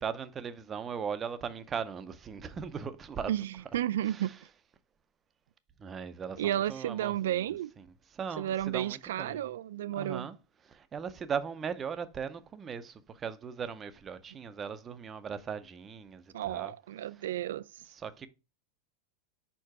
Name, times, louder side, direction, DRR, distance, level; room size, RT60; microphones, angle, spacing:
voice 1, 0.0-4.6 5.8-7.4 7.8-9.5 9.8-10.4 10.6-16.7 17.9-18.3, right 6 dB, 15° right, 0.5 m, -39 dB
voice 2, 3.3-4.3 6.4-7.7 8.4-10.3 16.3-17.8, right 12 dB, 80° right, 0.4 m, -32 dB
5.5 x 4.6 x 4.8 m
supercardioid pair, 175°, 0 cm